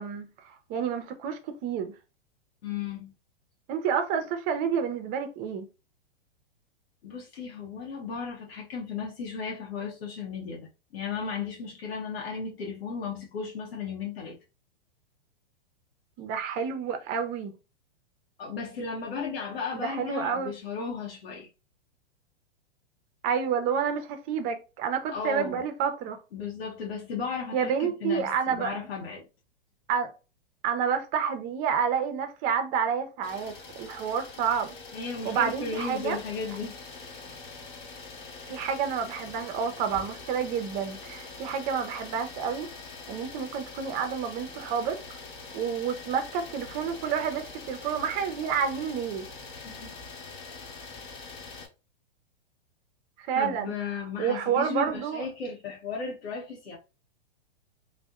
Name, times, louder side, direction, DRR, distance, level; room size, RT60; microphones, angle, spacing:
voice 1, 0.0-1.9 3.7-5.7 16.2-17.5 19.7-20.5 23.2-26.2 27.5-28.7 29.9-30.1 30.6-34.8 35.2-36.2 38.5-42.7 43.1-45.0 45.5-49.3 53.2-53.7 54.2-55.3, right 7 dB, 30° right, 0.5 m, -29 dB
voice 2, 2.6-3.1 7.0-14.4 18.4-21.5 25.1-25.6 26.3-29.3 34.9-36.8 49.5-49.9 50.4-50.7 53.3-56.8, left 5 dB, 75° left, 0.7 m, -35 dB
Idling, 33.2-51.7, left 3 dB, 55° left, 1.0 m, -44 dB
2.6 x 2.1 x 2.3 m
hypercardioid pair, 120°, 30 cm